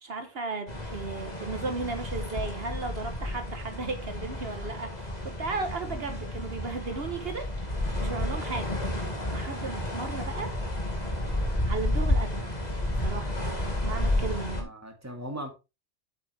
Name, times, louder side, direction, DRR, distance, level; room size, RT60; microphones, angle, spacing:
voice 1, 0.0-7.5 8.0-8.8 9.3-10.5 11.6-12.4 13.0-13.4 13.8-14.7, right 3 dB, 70° right, 1.5 m, -35 dB
sound 1, 0.7-14.6, left 1 dB, 40° left, 2.3 m, -31 dB
voice 2, 14.6-15.5, right 1 dB, 15° right, 2.2 m, -39 dB
8.3 x 7.7 x 3.4 m
omnidirectional pair, 1.1 m